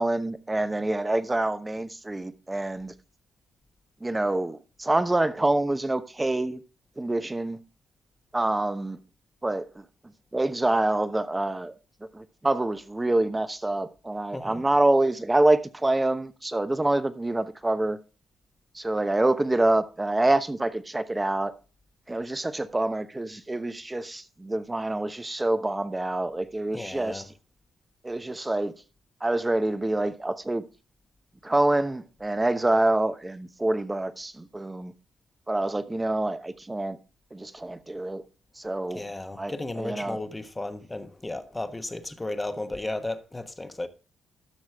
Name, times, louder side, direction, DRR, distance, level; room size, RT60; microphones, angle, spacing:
voice 1, 0.0-2.9 4.0-6.6 7.0-7.6 8.3-9.0 9.4-9.8 10.3-11.7 12.1-18.0 18.7-21.5 22.1-27.3 28.0-28.8 29.2-30.6 31.4-34.9 35.5-37.0 37.3-38.2 38.6-39.0 39.4-40.2, right 2 dB, 15° right, 1.0 m, -26 dB
voice 2, 26.7-27.2 38.9-43.9, left 2 dB, 15° left, 1.2 m, -34 dB
12.5 x 6.2 x 3.5 m
supercardioid pair, 70°, 0 cm